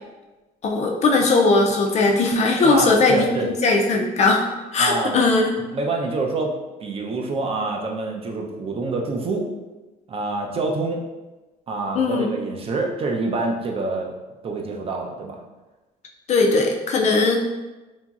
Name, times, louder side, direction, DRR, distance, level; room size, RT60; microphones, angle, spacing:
voice 1, 0.6-4.5 4.7-5.5 11.9-12.3 16.3-17.4, left 3 dB, 40° left, 1 dB, 0.4 m, -19 dB
voice 2, 2.6-3.5 4.8-5.2 5.7-6.5 6.8-9.5 10.1-11.0 11.7-14.1 14.4-15.4, right 3 dB, 35° right, 1 dB, 0.5 m, -26 dB
2.9 x 2.6 x 2.3 m, 1.1 s
cardioid pair, 110°, 17 cm